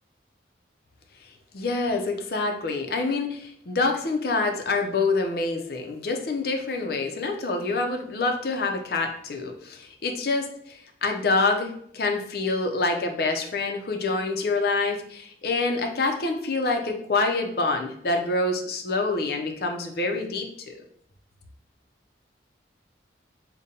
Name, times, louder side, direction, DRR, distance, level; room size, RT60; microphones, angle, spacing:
voice 1, 1.5-20.8, left 3 dB, 55° left, 4 dB, 0.5 m, -26 dB
5.1 x 2.2 x 2.7 m, 0.66 s
head